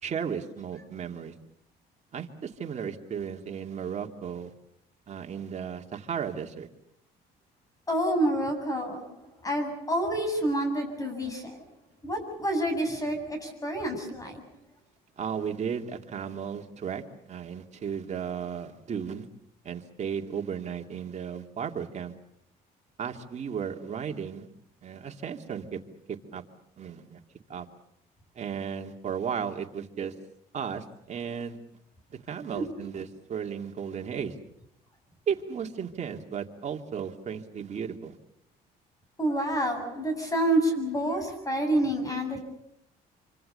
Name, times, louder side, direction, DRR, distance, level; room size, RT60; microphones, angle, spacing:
voice 1, 0.0-1.3 2.1-4.5 5.1-6.7 15.2-17.0 17.3-19.3 19.6-22.1 23.0-24.5 24.8-25.8 26.1-26.4 26.8-27.2 27.5-27.7 28.3-30.1 30.5-31.6 32.1-34.3 35.3-38.2, right 7 dB, 45° right, 3 dB, 2.7 m, -34 dB
voice 2, 7.9-9.1 9.4-11.6 12.0-14.4 32.5-32.7 39.2-42.4, right 1 dB, 20° left, 6 dB, 7.8 m, -28 dB
27.0 x 25.0 x 6.9 m, 0.74 s
cardioid pair, 110°, 17 cm